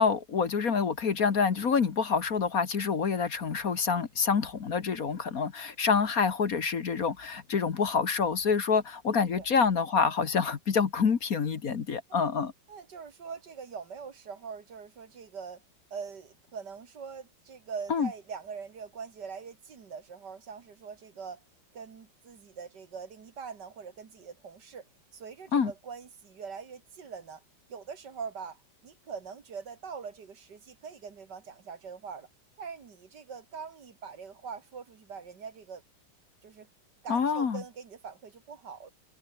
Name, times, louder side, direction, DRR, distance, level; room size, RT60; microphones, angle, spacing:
voice 1, 0.0-12.5 17.9-18.1 25.5-25.7 37.1-37.6, left 5 dB, 50° left, 1.8 m, -27 dB
voice 2, 9.1-9.5 12.1-12.2 12.7-15.6 15.9-21.4 21.7-24.9 25.1-27.4 27.7-32.3 32.6-35.8 36.4-36.7 37.0-38.9, right 6 dB, 60° right, 2.5 m, -43 dB
omnidirectional pair, 2.1 m